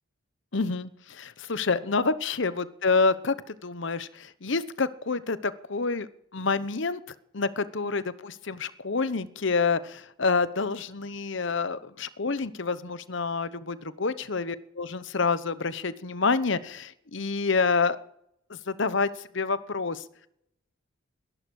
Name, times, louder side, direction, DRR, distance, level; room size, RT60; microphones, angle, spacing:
voice 1, 0.5-7.0 7.3-18.0 18.5-19.1 19.3-20.0, left 4 dB, 60° left, 15 dB, 0.9 m, -28 dB
19.5 x 11.5 x 6.4 m, 0.75 s
head